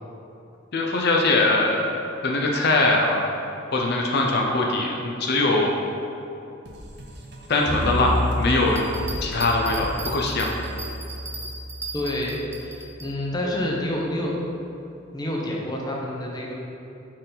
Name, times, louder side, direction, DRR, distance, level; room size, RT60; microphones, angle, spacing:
voice 1, 0.7-1.9 2.2-3.2 3.7-5.7 7.5-8.8 9.2-10.5, left 2 dB, 55° left, 0 dB, 0.6 m, -22 dB
sound 1, 6.6-11.9, right 1 dB, 55° right, 0.6 m, -39 dB
sound 2, 7.7-13.1, left 1 dB, 85° left, 1.1 m, -31 dB
sound 3, 8.7-13.1, right 2 dB, 15° right, 0.5 m, -37 dB
voice 2, 11.9-14.4 15.1-16.5, left 1 dB, 20° left, -2 dB, 0.7 m, -28 dB
6.4 x 3.9 x 3.9 m, 2.8 s
head